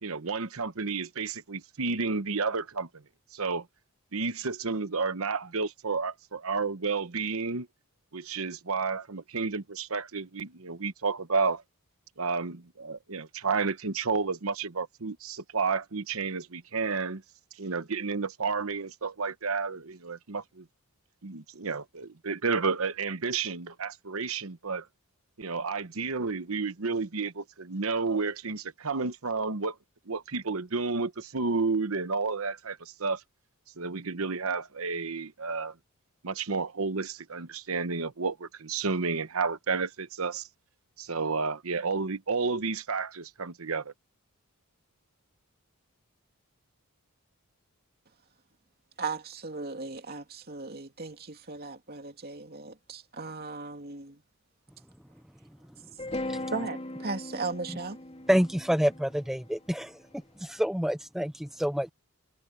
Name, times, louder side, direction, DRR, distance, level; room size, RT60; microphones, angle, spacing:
voice 1, 0.0-3.0 3.3-3.7 4.1-7.7 8.1-11.6 12.2-17.2 17.6-20.6 21.2-24.9 25.4-29.8 30.1-33.2 33.8-35.7 36.2-40.5 41.0-43.9, right 4 dB, 70° right, 1.0 m, -31 dB
voice 2, 49.0-54.2 56.5-58.0, right 4 dB, 45° right, 2.7 m, -37 dB
sound 1, 56.0-60.2, left 1 dB, 30° left, 3.1 m, -38 dB
voice 3, 58.3-60.0 60.4-61.9, equal, ahead, 0.4 m, -27 dB
head